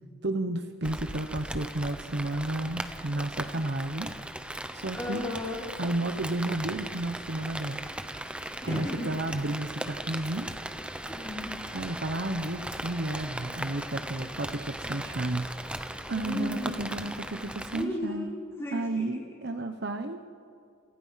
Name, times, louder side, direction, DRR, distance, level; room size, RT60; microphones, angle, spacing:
voice 1, 0.2-4.1 4.5-5.2 5.8-7.9 8.6-10.5 11.7-15.5 16.1-18.3 18.7-20.2, right 2 dB, 55° right, 7 dB, 1.0 m, -32 dB
Rain, 0.8-17.8, right 1 dB, 5° right, 0.9 m, -38 dB
voice 2, 4.9-5.6 8.6-9.1 11.0-11.5 16.2-16.9 17.7-19.1, left 1 dB, 15° left, -5 dB, 5.6 m, -35 dB
28.0 x 27.5 x 5.8 m, 2.3 s
head